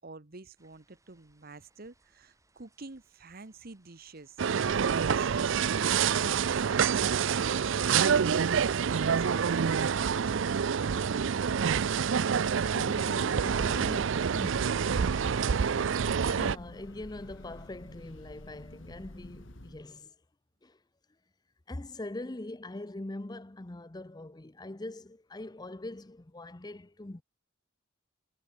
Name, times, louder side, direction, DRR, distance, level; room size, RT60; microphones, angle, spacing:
voice 1, 0.0-8.4 8.7-10.3, right 3 dB, 50° right, 1.2 m, -48 dB
sound 1, 0.6-10.3, right 1 dB, 15° right, 4.9 m, -62 dB
sound 2, 4.4-16.6, right 7 dB, 65° right, 0.5 m, -27 dB
voice 2, 12.6-14.9 16.2-20.1 20.6-20.8 21.7-27.2, left 2 dB, 20° left, 0.7 m, -42 dB
Breathing / Train, 14.4-19.9, left 1 dB, 70° left, 2.8 m, -49 dB
head